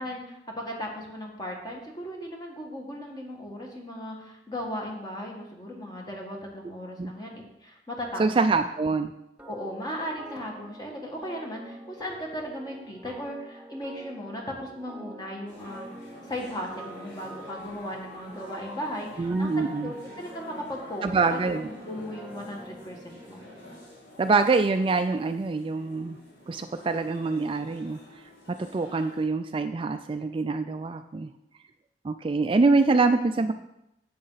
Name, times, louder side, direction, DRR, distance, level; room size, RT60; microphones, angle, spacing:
voice 1, 0.0-8.6 9.5-15.9 16.2-19.5 19.8-23.4 33.4-33.5, equal, 25° left, 0 dB, 1.8 m, -37 dB
voice 2, 8.2-9.1 19.2-19.9 21.0-21.7 24.2-26.2 26.5-28.0 28.7-31.3 32.0-33.5, right 3 dB, 30° right, 8 dB, 0.3 m, -25 dB
sound 1, 9.4-24.0, right 1 dB, 10° right, 0.7 m, -46 dB
sound 2, 15.5-29.3, left 1 dB, 90° left, 3.1 m, -49 dB
10.0 x 7.6 x 4.0 m, 0.83 s
head